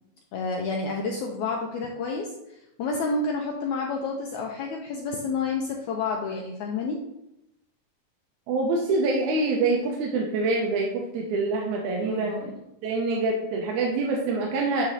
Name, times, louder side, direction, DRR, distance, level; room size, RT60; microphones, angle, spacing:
voice 1, 0.3-7.0 12.0-12.5, left 4 dB, 80° left, 0 dB, 1.7 m, -30 dB
voice 2, 8.5-12.4 12.8-14.8, right 3 dB, 75° right, -1 dB, 1.9 m, -25 dB
9.0 x 3.1 x 4.0 m, 0.86 s
omnidirectional pair, 3.9 m